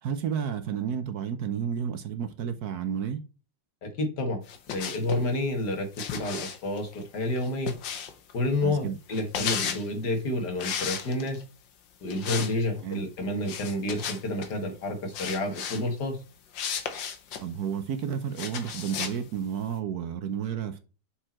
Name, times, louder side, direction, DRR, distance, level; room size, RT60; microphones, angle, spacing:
voice 1, 0.0-3.2 8.6-9.0 12.8-13.0 17.4-20.9, right 8 dB, 65° right, 1.2 m, -31 dB
voice 2, 3.8-4.4 4.7-7.7 8.3-11.4 12.0-16.2, left 1 dB, 65° left, 2.1 m, -29 dB
sound 1, 4.5-5.2 6.0-8.3 9.1-9.9 10.6-11.4 12.1-12.5 12.8-12.9 13.5-14.5 15.1-15.8 16.5-17.4 18.4-19.2, left 7 dB, 90° left, 1.7 m, -34 dB
6.8 x 4.4 x 4.4 m
omnidirectional pair, 1.9 m